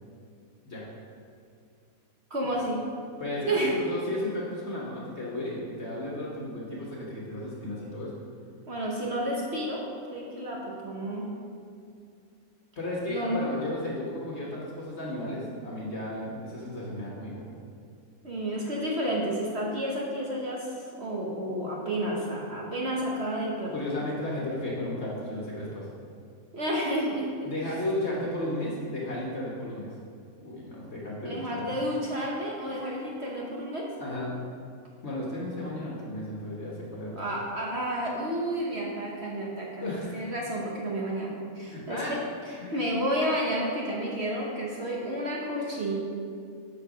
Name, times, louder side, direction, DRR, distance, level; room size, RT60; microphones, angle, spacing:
voice 1, 2.3-2.8 3.5-3.8 8.7-9.8 10.1-11.3 13.1-13.4 18.2-23.8 26.5-27.5 31.2-33.9 37.2-42.2 42.5-46.0, right 1 dB, 50° right, -3 dB, 1.1 m, -31 dB
voice 2, 3.2-8.1 12.8-17.4 23.7-25.9 27.4-29.9 30.4-31.7 34.0-34.3 35.0-37.2 39.8-40.2 41.7-42.3 42.6-42.8, left 1 dB, 50° left, -5 dB, 1.4 m, -34 dB
6.7 x 6.4 x 5.0 m, 2.4 s
omnidirectional pair, 1.6 m